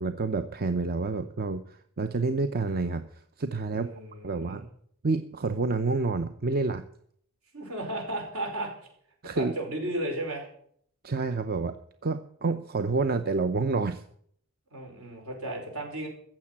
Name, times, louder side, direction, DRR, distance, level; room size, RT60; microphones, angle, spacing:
voice 1, 0.0-3.0 3.4-3.9 4.2-4.7 5.0-6.8 9.2-9.5 11.0-11.8 12.0-14.0, right 3 dB, 45° right, 9 dB, 0.7 m, -28 dB
voice 2, 3.7-4.6 7.5-8.9 9.3-10.5 14.7-16.1, right 1 dB, 75° right, 1 dB, 5.4 m, -34 dB
14.5 x 7.4 x 8.7 m, 0.65 s
head